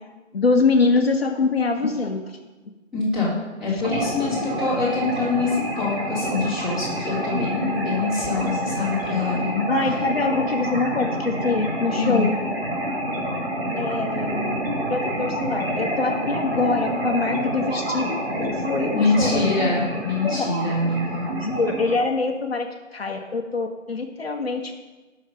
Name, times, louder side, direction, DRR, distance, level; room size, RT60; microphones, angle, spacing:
voice 1, 0.3-2.4 3.7-3.8 9.7-12.4 13.8-14.6 14.9-19.6 20.2-20.4 21.3-24.8, left 3 dB, 50° left, 3 dB, 1.2 m, -24 dB
voice 2, 2.9-9.7 11.9-12.3 18.9-21.3, left 3 dB, ahead, -12 dB, 2.3 m, -24 dB
sound 1, 3.8-21.9, right 1 dB, 50° right, 2.5 m, -28 dB
16.0 x 6.3 x 5.2 m, 1.2 s
figure-of-eight pair, 165°, 38 cm